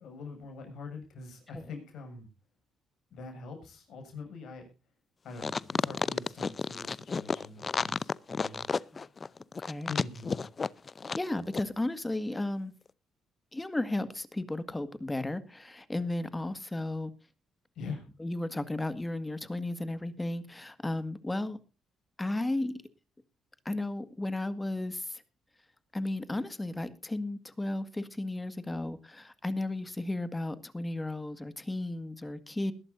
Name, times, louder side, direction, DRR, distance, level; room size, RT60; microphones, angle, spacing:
voice 1, 0.0-2.3 3.1-4.7 5.2-8.7 9.9-10.4 17.7-18.0, left 4 dB, 70° left, 6.8 m, -44 dB
sound 1, 5.4-11.3 11.5-11.6, left 4 dB, 40° left, 0.6 m, -31 dB
voice 2, 11.2-12.7 13.5-17.1 18.2-21.6 22.2-22.8 23.7-25.2 25.9-32.7, left 2 dB, 15° left, 1.9 m, -34 dB
21.0 x 11.5 x 2.6 m
supercardioid pair, 55°, 0 cm